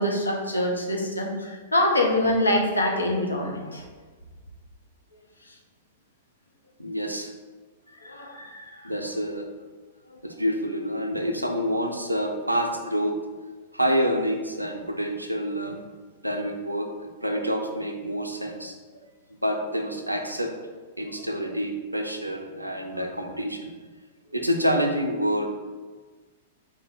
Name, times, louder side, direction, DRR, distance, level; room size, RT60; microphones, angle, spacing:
voice 1, 0.0-3.8 8.0-8.7 17.3-17.4, left 1 dB, 80° left, 0 dB, 0.7 m, -25 dB
voice 2, 6.8-7.3 8.8-9.5 10.2-13.2 13.7-15.8 16.2-16.9 17.2-18.8 19.4-20.6 21.0-23.7 24.3-25.5, equal, 85° right, 4 dB, 0.5 m, -27 dB
3.9 x 2.7 x 3.8 m, 1.4 s
figure-of-eight pair, 100°, 0 cm